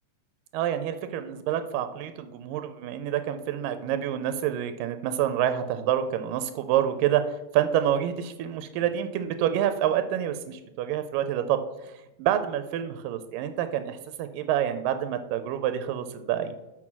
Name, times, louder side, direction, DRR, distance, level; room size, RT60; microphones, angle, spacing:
voice 1, 0.5-11.9 12.2-16.6, right 10 dB, 85° right, 9 dB, 2.2 m, -27 dB
6.3 x 6.1 x 5.9 m, 0.99 s
omnidirectional pair, 3.8 m